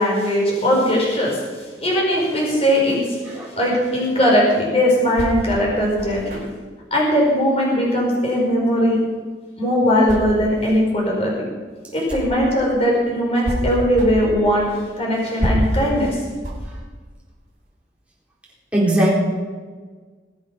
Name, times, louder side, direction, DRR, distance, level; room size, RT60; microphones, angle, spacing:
voice 1, 0.0-1.4 1.8-3.2 3.6-6.4 6.9-9.0 9.6-11.4 11.9-14.7 15.0-16.2, equal, 35° left, -3 dB, 5.0 m, -19 dB
sound 1, 4.1-12.6 12.9-17.7, equal, 45° right, 5.0 m, -29 dB
voice 2, 18.7-19.1, right 1 dB, 5° right, -5 dB, 4.2 m, -18 dB
22.0 x 8.5 x 5.4 m, 1.5 s
head